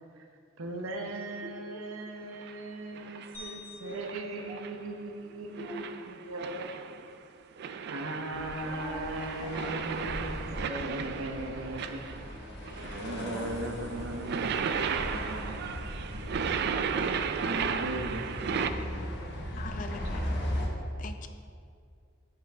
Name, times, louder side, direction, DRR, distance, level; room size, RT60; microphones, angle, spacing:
voice 1, 0.6-7.0 7.9-12.1 12.8-16.2 17.4-18.4, right 1 dB, 70° right, 5 dB, 0.7 m, -38 dB
sound 1, 2.2-2.6 2.9-3.5 3.9-4.9 5.5-7.1 7.6-12.4 12.6-18.7, right 6 dB, 55° right, 0.3 m, -35 dB
sound 2, 3.3-5.7, left 2 dB, 10° left, 1.4 m, -50 dB
sound 3, 8.3-20.7, left 1 dB, 55° left, 1.0 m, -38 dB
voice 2, 8.6-9.1 10.5-10.8 13.3-13.7 16.7-17.3 18.5-19.3, equal, 15° right, 1 dB, 0.7 m, -43 dB
voice 3, 19.6-20.4 21.0-21.3, left 4 dB, 40° left, 8 dB, 0.4 m, -42 dB
5.8 x 5.7 x 4.9 m, 2.2 s
head